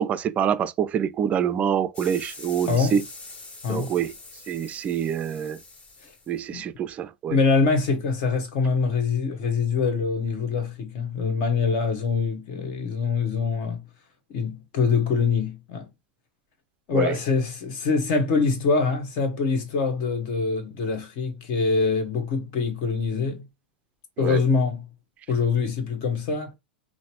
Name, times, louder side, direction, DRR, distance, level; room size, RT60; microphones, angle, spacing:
voice 1, 0.0-3.0 3.7-4.1 4.5-5.6 6.3-7.4 16.9-17.1 24.2-24.4, right 8 dB, 25° right, 0.4 m, -26 dB
sound 1, 1.9-6.9, left 3 dB, 25° left, 0.9 m, -44 dB
voice 2, 2.7-3.0 3.6-4.0 6.0-6.1 6.5-6.7 7.3-13.8 14.3-15.9 16.9-23.4 24.2-24.8 25.3-26.5, left 4 dB, 50° left, 1.3 m, -24 dB
5.6 x 2.1 x 2.9 m
figure-of-eight pair, 95°, 5 cm